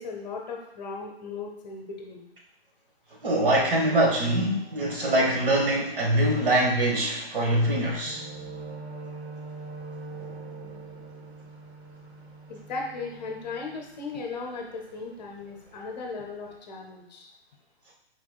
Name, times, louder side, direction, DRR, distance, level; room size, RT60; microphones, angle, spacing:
voice 1, 0.0-2.3 12.5-17.3, left 4 dB, 40° left, 1 dB, 0.8 m, -37 dB
voice 2, 3.2-8.2, right 1 dB, 55° right, -2 dB, 1.4 m, -23 dB
sound 1, 8.1-14.6 14.9-15.2 15.6-16.1 16.5-16.6, right 3 dB, 70° right, 0.9 m, -42 dB
4.5 x 4.4 x 2.3 m, 0.81 s
figure-of-eight pair, 125°, 33 cm